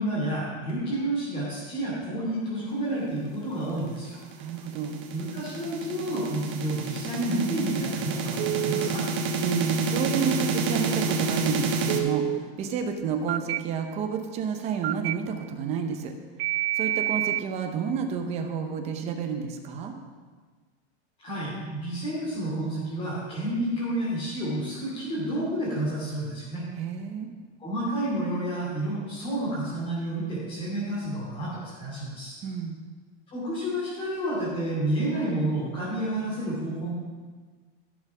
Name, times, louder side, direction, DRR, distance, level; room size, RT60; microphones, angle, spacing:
voice 1, 0.0-4.2 5.1-9.0 21.2-26.6 27.6-32.4 33.3-36.9, right 1 dB, 15° left, -9 dB, 2.7 m, -30 dB
sound 1, 3.9-12.0, right 4 dB, 45° right, 1.4 m, -29 dB
voice 2, 4.4-5.0 9.4-16.1 16.8-20.0 26.8-27.3 32.4-32.8, right 6 dB, 20° right, 5 dB, 0.8 m, -30 dB
Telephone, 8.4-8.9 11.9-12.4 13.3-13.6 14.8-15.1 16.4-17.4, right 16 dB, 70° right, 0.5 m, -27 dB
14.5 x 6.9 x 6.1 m, 1.5 s
supercardioid pair, 175°, 33 cm